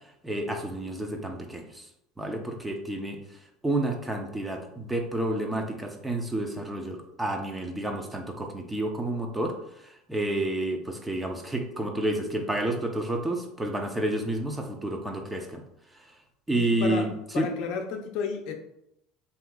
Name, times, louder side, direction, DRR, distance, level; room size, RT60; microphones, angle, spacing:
voice 1, 0.2-1.8 2.2-3.2 3.6-9.5 9.8-15.6 16.5-17.5, right 1 dB, 10° right, 0.8 m, -30 dB
voice 2, 16.5-17.1 17.3-18.5, left 6 dB, 65° left, 0.6 m, -32 dB
7.5 x 2.9 x 2.4 m
supercardioid pair, 105°, 0 cm